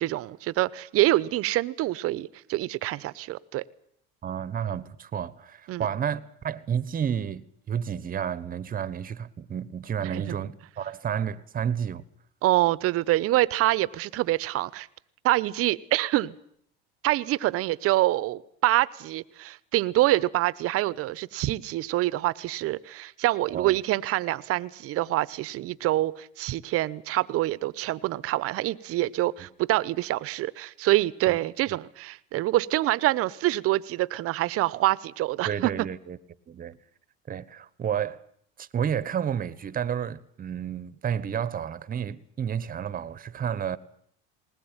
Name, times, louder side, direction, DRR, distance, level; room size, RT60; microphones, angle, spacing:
voice 1, 0.0-3.6 5.7-5.9 10.0-10.3 12.4-14.9 15.2-16.4 17.0-35.9, right 16 dB, 50° right, 1.0 m, -26 dB
voice 2, 4.2-12.0 23.5-23.8 31.3-31.4 35.4-36.2 36.5-36.8 37.3-38.2 38.6-43.8, right 8 dB, 30° right, 1.2 m, -31 dB
20.0 x 19.5 x 9.0 m
supercardioid pair, 105°, 29 cm